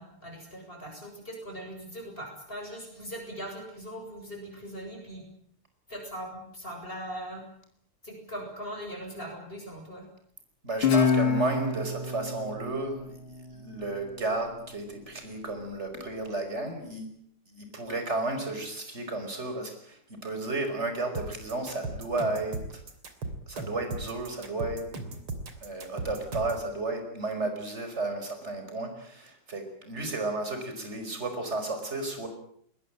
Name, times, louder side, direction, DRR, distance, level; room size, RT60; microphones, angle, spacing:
voice 1, 0.0-5.2 5.9-7.4 8.0-10.1, equal, 25° left, 2 dB, 7.8 m, -40 dB
voice 2, 10.6-17.2 17.5-22.8 23.5-24.9 25.6-32.3, right 2 dB, 30° right, 6 dB, 5.5 m, -33 dB
Guitar, 10.8-14.1, left 5 dB, 75° left, 3.6 m, -27 dB
sound 1, 21.2-26.7, right 2 dB, 75° right, 3.9 m, -37 dB
21.5 x 21.5 x 8.9 m, 0.65 s
omnidirectional pair, 2.4 m